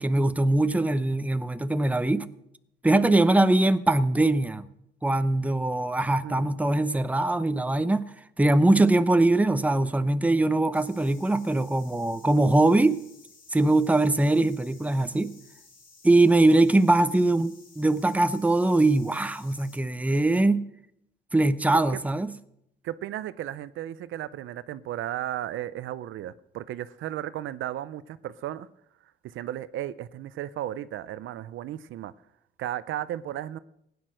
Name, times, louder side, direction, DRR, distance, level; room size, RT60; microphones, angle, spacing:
voice 1, 0.0-2.3 2.8-4.6 5.0-8.0 8.4-13.0 13.5-15.3 16.0-20.6 21.3-22.3, right 2 dB, 5° right, 12 dB, 0.7 m, -22 dB
voice 2, 6.2-6.5 21.7-22.0 22.8-28.7 29.2-32.1 32.6-33.6, right 12 dB, 80° right, 15 dB, 0.6 m, -35 dB
sound 1, 10.7-19.8, left 4 dB, 85° left, 4.0 m, -55 dB
16.0 x 9.6 x 6.3 m, 0.78 s
cardioid pair, 90°, 20 cm